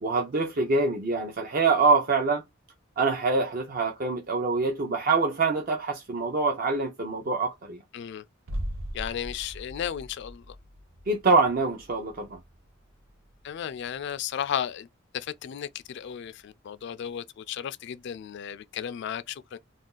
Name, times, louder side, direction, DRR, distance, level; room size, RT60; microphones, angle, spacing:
voice 1, 0.0-2.4 3.0-7.8 11.1-12.4, right 3 dB, 45° right, 0.5 m, -25 dB
voice 2, 7.9-8.2 8.9-10.6 13.4-14.9 15.1-19.6, left 9 dB, 60° left, 0.3 m, -34 dB
sound 1, 8.5-14.2 14.5-14.6, equal, 90° right, 0.6 m, -40 dB
2.5 x 2.3 x 3.7 m
head